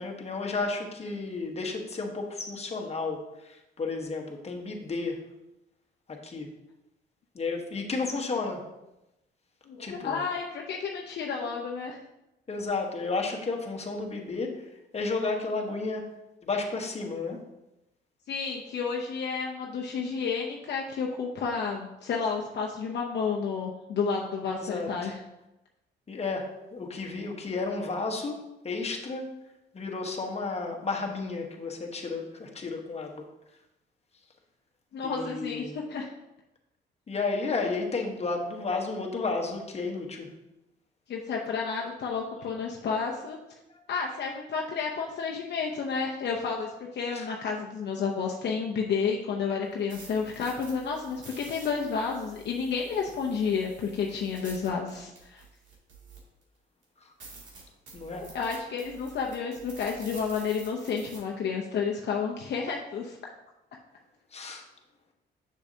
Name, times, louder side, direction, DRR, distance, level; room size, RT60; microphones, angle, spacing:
voice 1, 0.0-5.2 6.2-6.5 7.3-8.6 9.8-10.2 12.5-17.4 24.5-25.1 26.1-28.4 28.6-29.3 29.7-33.3 35.0-35.8 37.1-40.3 43.7-43.8 47.1-47.3 57.0-57.1 57.9-58.2 64.3-64.6, left 3 dB, 30° left, 1 dB, 1.2 m, -32 dB
voice 2, 9.7-12.0 18.3-25.2 34.9-36.1 41.1-43.4 43.9-55.4 58.3-63.3, left 5 dB, 60° left, 0 dB, 0.7 m, -31 dB
sound 1, 49.6-56.4 56.8-56.9 57.2-61.2, right 3 dB, 70° right, 2.5 m, -49 dB
6.8 x 6.4 x 2.8 m, 0.93 s
cardioid pair, 90°, 20 cm